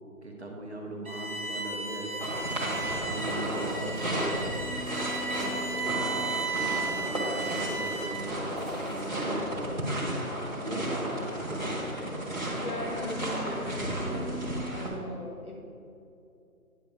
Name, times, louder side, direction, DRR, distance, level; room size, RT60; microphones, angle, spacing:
voice 1, 0.2-2.3 2.8-4.6 5.3-6.0 6.5-9.8 10.5-11.8, right 2 dB, 45° right, 0 dB, 1.3 m, -39 dB
Bowed string instrument, 1.1-8.3, right 4 dB, 70° right, 1.4 m, -35 dB
sound 1, 2.2-14.9, equal, 30° right, 1.4 m, -33 dB
sound 2, 2.7-9.0, right 1 dB, ahead, 0.8 m, -53 dB
voice 2, 12.6-14.4 14.7-15.6, left 1 dB, 75° left, -2 dB, 2.3 m, -38 dB
10.0 x 6.0 x 4.5 m, 2.7 s
figure-of-eight pair, 180°, 44 cm